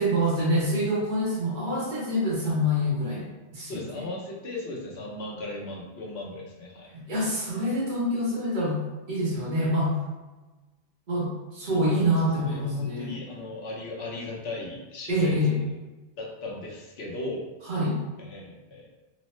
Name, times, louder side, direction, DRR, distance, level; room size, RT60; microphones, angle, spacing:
voice 1, 0.0-4.1 6.9-8.8 9.1-10.0 11.1-13.1 15.1-15.6 17.6-18.0, equal, 50° right, -5 dB, 1.0 m, -26 dB
voice 2, 3.7-6.9 11.7-15.7 16.2-17.5 18.2-18.9, left 2 dB, 70° left, -2 dB, 0.9 m, -37 dB
3.0 x 2.0 x 3.0 m, 1.2 s
omnidirectional pair, 1.1 m